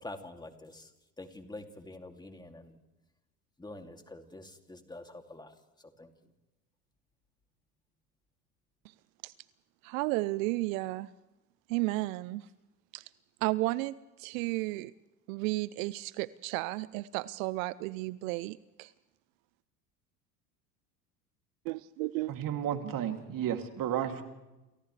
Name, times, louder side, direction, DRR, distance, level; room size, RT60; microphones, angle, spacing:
voice 1, 0.0-0.9 1.2-2.8 3.6-5.5 6.0-6.1, left 2 dB, 10° left, 5 dB, 2.7 m, -46 dB
voice 2, 9.8-11.1 11.7-12.4 12.9-13.0 13.4-14.9 15.3-18.9 21.7-22.3, right 20 dB, 60° right, 19 dB, 0.7 m, -33 dB
voice 3, 22.3-24.2, right 10 dB, 45° right, 5 dB, 2.8 m, -32 dB
29.5 x 27.5 x 3.3 m, 1.0 s
hypercardioid pair, 80°, 47 cm